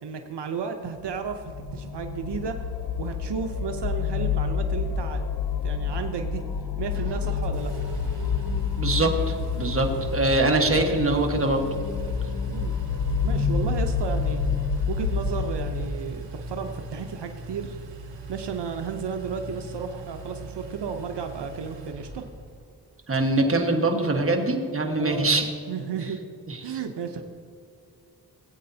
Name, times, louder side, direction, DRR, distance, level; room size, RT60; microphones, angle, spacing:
voice 1, 0.0-2.6 3.0-5.3 5.6-6.4 6.8-7.7 9.9-10.0 12.5-12.8 13.2-14.4 14.9-17.8 18.3-22.3 25.0-25.3 25.7-26.2 26.6-27.2, right 6 dB, 75° right, 5 dB, 0.8 m, -33 dB
sound 1, 1.1-15.9, left 6 dB, 55° left, 0.7 m, -28 dB
Engine, 6.9-22.6, right 2 dB, 90° right, 1.3 m, -39 dB
voice 2, 8.8-11.7 23.1-25.5 26.5-26.6, right 2 dB, 30° right, 3 dB, 1.4 m, -23 dB
17.0 x 8.5 x 2.8 m, 2.5 s
cardioid pair, 80°, 42 cm